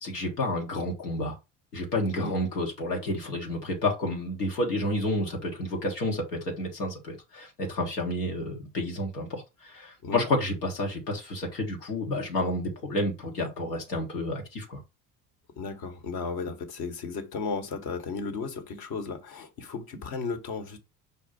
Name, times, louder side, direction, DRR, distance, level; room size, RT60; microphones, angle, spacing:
voice 1, 0.0-1.3 1.7-9.4 9.7-14.8, left 1 dB, 90° left, 1.4 m, -30 dB
voice 2, 15.6-20.8, left 4 dB, 50° left, 1.3 m, -34 dB
5.4 x 2.4 x 4.2 m
hypercardioid pair, 65°, 46 cm